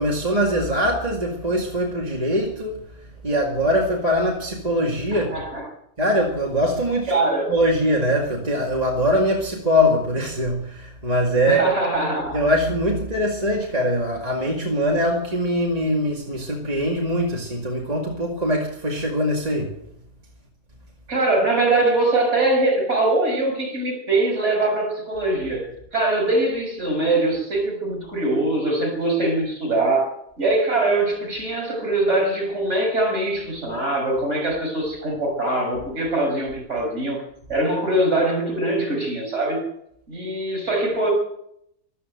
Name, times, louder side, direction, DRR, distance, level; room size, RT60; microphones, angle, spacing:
voice 1, 0.0-5.3 6.0-7.1 7.5-11.7 12.3-19.7, equal, 25° right, 2.2 m, -22 dB
voice 2, 5.1-5.6 7.1-7.5 11.5-12.4 21.1-25.7 25.9-37.2 37.5-39.6 40.1-41.1, right 2 dB, 50° right, 6.7 m, -22 dB
14.0 x 13.0 x 8.0 m
omnidirectional pair, 1.5 m